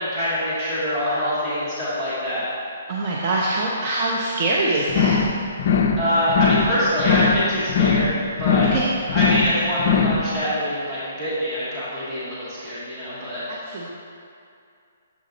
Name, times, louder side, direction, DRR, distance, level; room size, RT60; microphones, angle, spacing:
voice 1, 0.0-2.5 6.0-8.1 8.4-8.7 9.1-13.4, equal, 10° right, -13 dB, 1.2 m, -24 dB
voice 2, 2.9-5.2 8.6-8.9 13.5-13.9, right 2 dB, 25° right, -4 dB, 0.4 m, -24 dB
sound 1, 4.9-5.3 5.6-6.0 6.3-6.7 7.0-7.4 7.7-8.1 8.4-8.8 9.1-9.5 9.8-10.2, left 6 dB, 40° left, 0.4 m, -20 dB
7.2 x 4.1 x 3.8 m, 2.5 s
hypercardioid pair, 175°, 0 cm